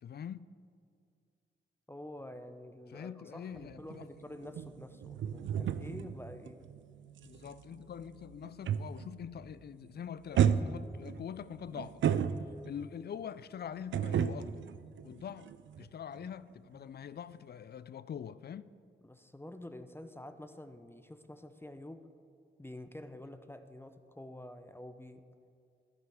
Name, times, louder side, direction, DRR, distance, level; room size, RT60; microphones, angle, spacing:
voice 1, 0.0-0.5 2.9-4.1 7.2-12.0 12.6-14.6 15.0-15.5 15.8-18.7, left 8 dB, 55° left, 0.4 m, -44 dB
voice 2, 1.9-6.7 19.0-22.1 22.6-25.2, left 1 dB, 10° left, 0.6 m, -48 dB
sound 1, 3.5-9.2 9.5-9.9 10.3-12.9 13.9-15.9 16.1-16.3, right 8 dB, 70° right, 0.4 m, -33 dB
14.0 x 5.9 x 3.6 m
supercardioid pair, 40°, 20 cm